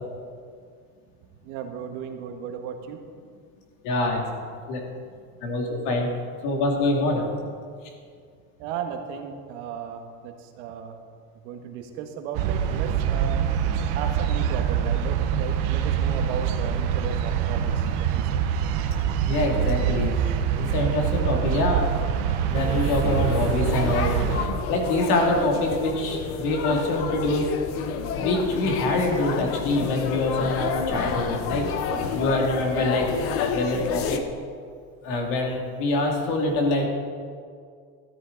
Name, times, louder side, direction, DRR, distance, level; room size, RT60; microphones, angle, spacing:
voice 1, 1.4-3.0 8.6-11.0 11.4-13.4 13.9-18.4 31.9-32.2, right 7 dB, 80° right, 5 dB, 1.6 m, -35 dB
voice 2, 3.8-4.2 4.7-4.8 5.4-6.1 6.4-7.3 19.3-20.1 20.5-21.9 22.5-24.1 24.7-27.5 28.2-31.7 32.1-33.1 33.5-34.2 35.0-36.9, left 2 dB, 55° left, 1 dB, 2.5 m, -25 dB
sound 1, 12.3-24.5, right 8 dB, 60° right, 1.0 m, -25 dB
sound 2, 22.5-34.2, left 7 dB, 40° left, 0.7 m, -30 dB
14.0 x 12.5 x 4.0 m, 2.2 s
cardioid pair, 175°, 37 cm